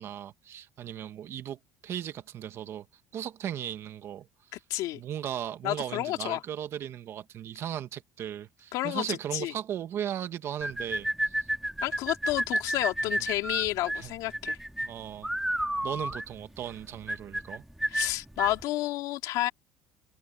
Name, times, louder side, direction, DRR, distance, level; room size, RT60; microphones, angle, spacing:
voice 1, 0.0-2.9 3.1-4.6 4.9-11.5 13.0-13.2 13.9-14.2 14.8-15.3 15.8-17.6, right 10 dB, 40° right, 1.8 m, -37 dB
voice 2, 4.5-5.0 5.6-6.4 8.7-9.5 11.8-14.6 17.9-19.5, left 16 dB, 60° left, 2.7 m, -30 dB
sound 1, 10.6-18.6, right 1 dB, 5° right, 1.8 m, -31 dB
cardioid pair, 155°, 7 cm